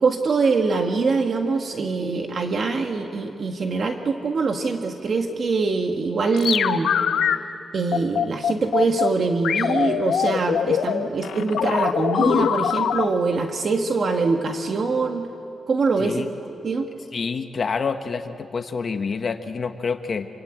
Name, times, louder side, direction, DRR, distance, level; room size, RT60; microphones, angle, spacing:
voice 1, 0.0-6.9 7.7-15.3 15.7-16.2 16.6-16.8, right 4 dB, 50° right, 3 dB, 1.8 m, -23 dB
sound 1, 6.3-7.4 7.9-9.1 9.4-13.0, left 8 dB, 85° left, 1.1 m, -22 dB
voice 2, 17.1-20.3, left 5 dB, 45° left, 7 dB, 1.3 m, -27 dB
27.0 x 24.5 x 8.9 m, 2.6 s
wide cardioid pair, 130°, 0 cm